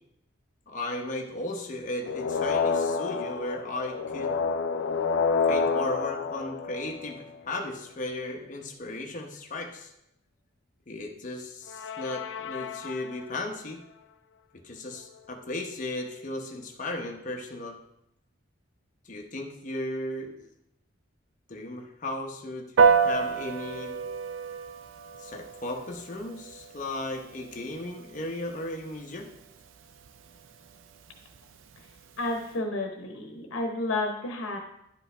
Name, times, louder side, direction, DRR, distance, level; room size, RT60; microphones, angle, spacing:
voice 1, 0.7-4.3 5.5-9.9 10.9-13.8 14.6-17.8 19.0-20.5 21.5-22.7 23.0-23.9 25.2-29.3, left 1 dB, 40° left, 2 dB, 0.9 m, -35 dB
sound 1, 2.0-7.4 11.7-13.4, left 5 dB, 65° left, 0.4 m, -29 dB
Piano, 22.8-32.5, right 5 dB, 75° right, 0.5 m, -30 dB
voice 2, 32.2-34.6, left 2 dB, 80° left, 2 dB, 0.9 m, -31 dB
10.5 x 5.2 x 3.3 m, 0.81 s
head